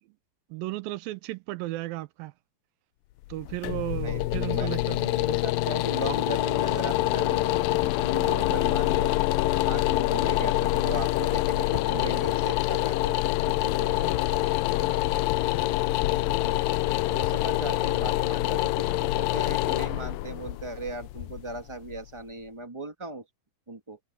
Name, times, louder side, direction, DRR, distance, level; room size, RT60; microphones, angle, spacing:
voice 1, 0.5-2.3 3.3-5.1 14.7-15.0, right 18 dB, 85° right, 2.5 m, -34 dB
sound 1, 3.2-22.2, left 17 dB, 80° left, 2.3 m, -26 dB
voice 2, 4.0-4.7 5.0-9.1 9.6-13.2 13.5-14.4 15.7-15.9 16.1-16.7 17.1-23.2 23.7-24.0, right 2 dB, 45° right, 0.3 m, -38 dB
omnidirectional pair, 4.1 m